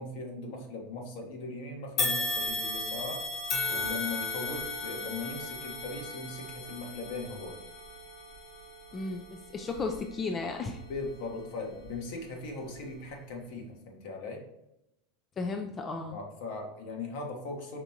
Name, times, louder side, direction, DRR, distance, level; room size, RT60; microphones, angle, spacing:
voice 1, 0.0-3.2 3.6-7.6 10.9-14.4 16.1-17.8, left 3 dB, 65° left, 1 dB, 1.3 m, -39 dB
sound 1, 2.0-11.3 11.8-12.0 12.9-13.0, left 2 dB, 45° left, 1.2 m, -36 dB
voice 2, 8.9-10.8 15.4-16.2, left 3 dB, 25° left, 4 dB, 0.4 m, -34 dB
5.1 x 3.5 x 2.9 m, 0.85 s
supercardioid pair, 120°, 0 cm